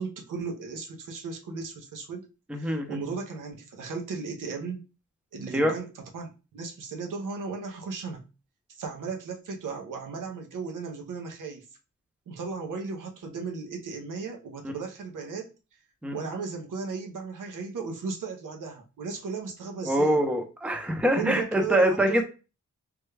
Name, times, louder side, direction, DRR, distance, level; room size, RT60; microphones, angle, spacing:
voice 1, 0.0-2.3 2.6-4.8 5.3-8.2 8.7-11.6 12.3-15.5 16.1-20.2 21.0-22.2, right 5 dB, 80° right, 0.7 m, -36 dB
voice 2, 2.5-3.0 5.5-5.7 16.0-16.1 19.8-22.2, right 1 dB, 5° right, 0.6 m, -24 dB
3.3 x 2.2 x 3.2 m
wide cardioid pair, 125°, 31 cm